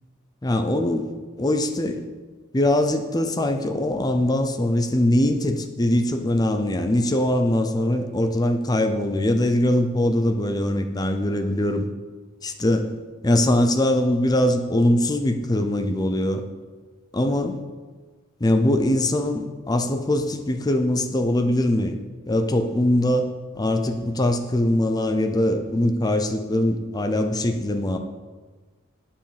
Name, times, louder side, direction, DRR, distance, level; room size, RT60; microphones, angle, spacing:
voice 1, 0.4-1.1 1.4-2.0 2.5-11.9 12.4-12.9 13.2-16.4 17.1-17.6 18.4-22.0 22.3-23.3 23.6-28.0, left 1 dB, 20° left, 6 dB, 0.6 m, -22 dB
9.4 x 5.7 x 5.1 m, 1.3 s
head